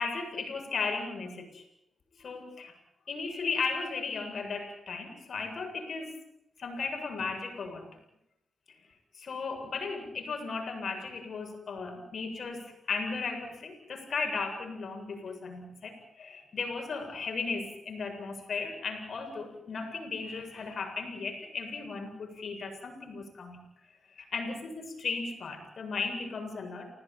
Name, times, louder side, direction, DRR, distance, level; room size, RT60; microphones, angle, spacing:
voice 1, 0.0-1.7 2.2-2.7 3.1-6.2 6.6-8.0 9.2-23.6 24.1-26.9, left 4 dB, 65° left, 5 dB, 7.8 m, -36 dB
29.5 x 18.0 x 9.2 m, 0.82 s
supercardioid pair, 45°, 0 cm